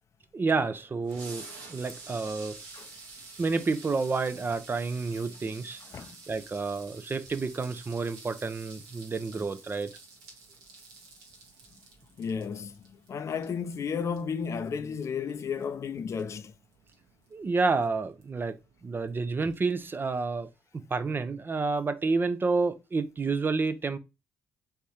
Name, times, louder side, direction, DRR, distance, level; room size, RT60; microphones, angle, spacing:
voice 1, 0.3-2.6 3.4-9.9 17.3-24.0, right 4 dB, 35° right, 0.7 m, -30 dB
sound 1, 0.6-20.4, right 3 dB, 85° right, 1.2 m, -50 dB
voice 2, 12.2-12.7 13.1-16.5, left 6 dB, 50° left, 0.5 m, -33 dB
3.5 x 3.5 x 4.2 m
hypercardioid pair, 50°, 6 cm